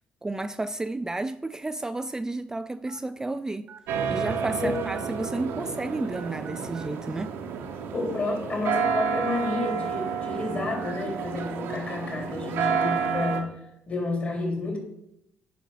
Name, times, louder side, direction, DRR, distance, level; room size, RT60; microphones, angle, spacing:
voice 1, 0.2-3.7 4.1-7.3, right 2 dB, 15° right, 0.3 m, -32 dB
sound 1, 0.7-0.9 1.7-1.8 2.9-3.0 3.7-3.8 4.2-4.4 4.7-5.9 6.1-6.9 7.2-7.3 8.6-8.9 9.2-9.3 10.7-10.9 11.4-11.5 12.0-12.1 12.8-12.9, right 8 dB, 50° right, 0.9 m, -46 dB
sound 2, 3.9-13.4, right 6 dB, 80° right, 1.2 m, -30 dB
voice 2, 7.9-13.5 13.9-14.8, left 3 dB, 40° left, 3.4 m, -30 dB
9.8 x 5.0 x 4.8 m
supercardioid pair, 75°, 4 cm